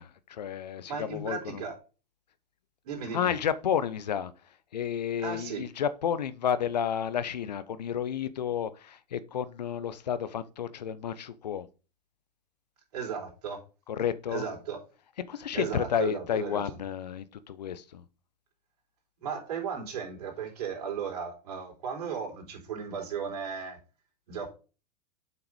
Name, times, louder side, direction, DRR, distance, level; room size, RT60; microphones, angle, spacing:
voice 1, 0.0-1.6 3.1-4.3 4.7-11.7 13.9-14.5 15.3-18.0, left 8 dB, 75° left, 0.8 m, -31 dB
voice 2, 0.9-1.8 2.8-3.3 5.2-5.6 12.9-13.6 14.3-14.8 15.5-16.6 19.2-23.8 24.3-24.5, right 6 dB, 65° right, 3.9 m, -35 dB
7.7 x 5.9 x 5.1 m
figure-of-eight pair, 90°, 21 cm